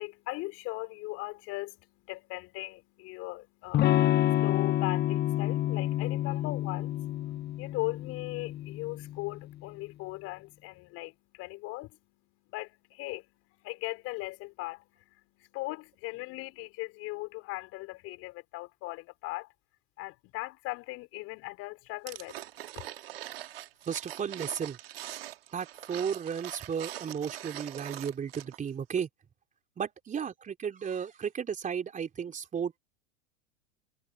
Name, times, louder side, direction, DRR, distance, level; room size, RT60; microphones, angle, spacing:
voice 1, 0.0-19.5 20.0-22.4, left 22 dB, 50° left, 5.0 m, -39 dB
Electric guitar / Strum, 3.7-9.5, left 13 dB, 35° left, 1.1 m, -29 dB
sound 1, 22.1-28.7 29.0-29.1, right 13 dB, 70° right, 2.3 m, -43 dB
voice 2, 23.9-24.8 25.5-29.1 29.8-32.8, right 7 dB, 25° right, 3.9 m, -34 dB
hypercardioid pair, 90°, 30 cm